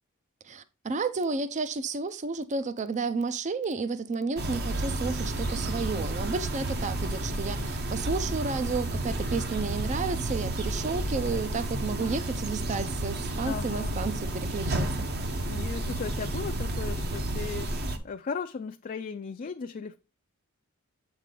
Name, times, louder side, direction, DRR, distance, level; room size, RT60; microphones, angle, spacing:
voice 1, 0.4-15.1, right 4 dB, 35° right, 0.5 m, -32 dB
sound 1, 4.4-18.0, right 1 dB, 50° right, 0.9 m, -31 dB
voice 2, 13.4-14.0 15.5-17.7 18.0-20.0, left 5 dB, 40° left, 0.4 m, -36 dB
7.5 x 4.8 x 3.7 m
head